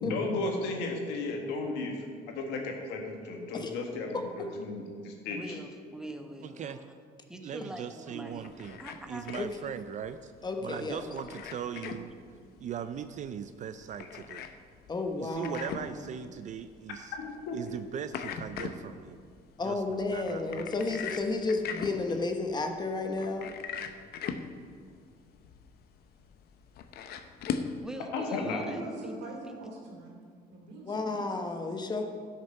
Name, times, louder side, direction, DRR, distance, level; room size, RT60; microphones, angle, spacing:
voice 1, 0.0-1.9 2.3-5.5 17.2-17.6 28.1-28.7, left 3 dB, 90° left, 2 dB, 1.8 m, -34 dB
voice 2, 5.3-6.9 7.3-9.5 27.8-29.1, right 1 dB, 5° right, 4 dB, 1.0 m, -44 dB
voice 3, 6.4-6.8 7.4-8.8 9.1-10.3 10.6-12.1 12.6-14.5 15.2-17.1 17.5-19.2 19.6-21.0, right 8 dB, 45° right, 11 dB, 0.4 m, -39 dB
sound 1, 8.3-27.8, left 7 dB, 70° left, 0.7 m, -41 dB
voice 4, 10.4-11.1 14.9-16.0 19.6-23.5 30.9-32.1, left 3 dB, 25° left, 5 dB, 1.1 m, -32 dB
voice 5, 28.3-30.2 30.5-31.4, right 2 dB, 90° right, -1 dB, 2.8 m, -41 dB
11.5 x 6.6 x 5.5 m, 2.1 s
cardioid pair, 110°, 17 cm